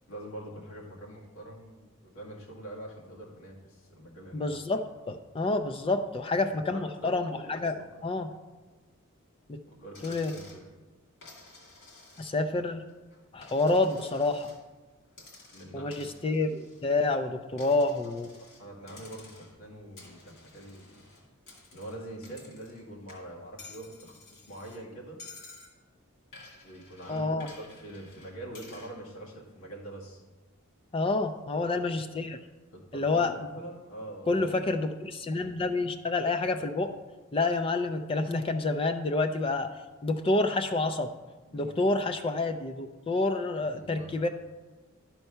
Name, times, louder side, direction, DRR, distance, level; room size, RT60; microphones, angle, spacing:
voice 1, 0.1-4.5 6.7-7.9 9.6-10.6 15.5-16.1 17.6-17.9 18.4-21.0 21.7-25.2 26.6-30.2 31.6-32.0 32.7-34.5 41.5-41.8 43.5-44.3, right 1 dB, 90° left, -3 dB, 2.2 m, -44 dB
voice 2, 4.3-7.8 8.0-8.3 9.5-9.6 10.0-10.3 12.2-12.8 13.3-14.5 15.7-18.3 27.1-27.5 30.9-32.4 32.9-33.3 34.3-36.9 37.3-39.7 40.0-41.1 41.5-44.3, left 2 dB, 25° left, 8 dB, 0.4 m, -28 dB
Coin (dropping), 9.9-10.6 11.2-12.5 12.9-14.6 15.1-17.2 17.6-18.6 18.9-19.6 20.0-22.8 23.1-24.8 25.2-25.7 26.3-28.9, left 3 dB, 60° left, 2.4 m, -52 dB
11.5 x 4.5 x 5.5 m, 1.3 s
head